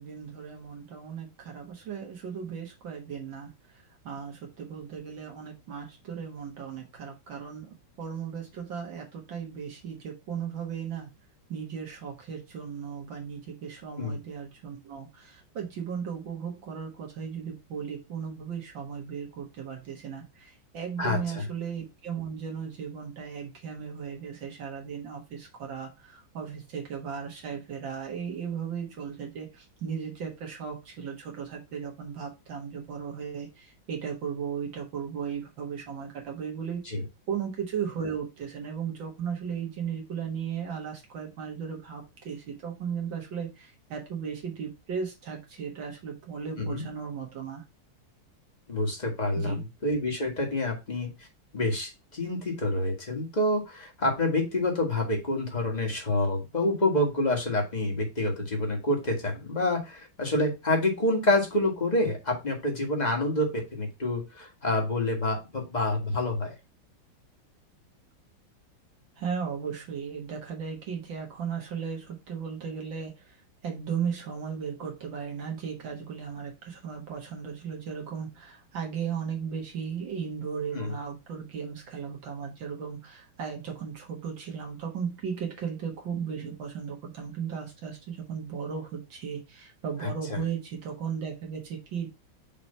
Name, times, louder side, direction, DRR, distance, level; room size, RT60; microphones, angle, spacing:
voice 1, 0.0-3.5 4.0-7.7 8.0-11.1 11.5-36.8 37.3-47.6 49.4-49.6 69.2-73.4 73.6-92.1, right 7 dB, 70° right, 0 dB, 2.1 m, -36 dB
voice 2, 21.0-21.5 36.8-37.0 46.6-46.8 48.7-51.3 51.5-66.5 80.7-81.0 90.0-90.4, left 1 dB, 20° left, 1 dB, 1.6 m, -28 dB
5.8 x 3.1 x 5.3 m, 0.25 s
omnidirectional pair, 2.2 m